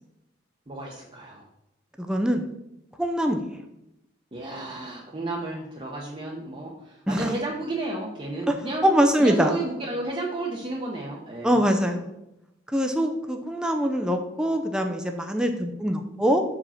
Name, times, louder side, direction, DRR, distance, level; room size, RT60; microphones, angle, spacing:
voice 1, 0.7-1.5 4.3-8.9 9.2-11.6, right 2 dB, 30° right, -3 dB, 0.9 m, -32 dB
voice 2, 2.0-2.5 3.0-3.5 7.1-7.3 8.5-8.6 8.8-9.6 11.4-12.1 12.7-16.4, equal, 5° right, 4 dB, 0.5 m, -23 dB
6.3 x 4.9 x 5.6 m, 0.89 s
head